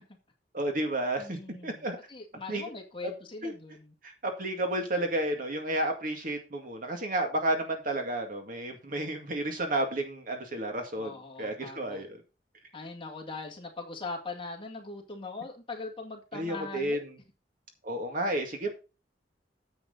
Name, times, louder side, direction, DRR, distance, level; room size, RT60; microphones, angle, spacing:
voice 1, 0.5-2.0 2.5-2.7 3.4-3.5 4.0-12.2 16.3-17.2 17.8-18.7, right 1 dB, 50° right, 2.1 m, -31 dB
voice 2, 1.2-3.9 11.0-12.1 12.7-17.0, left 3 dB, 30° left, 2.1 m, -41 dB
9.6 x 7.8 x 3.9 m
head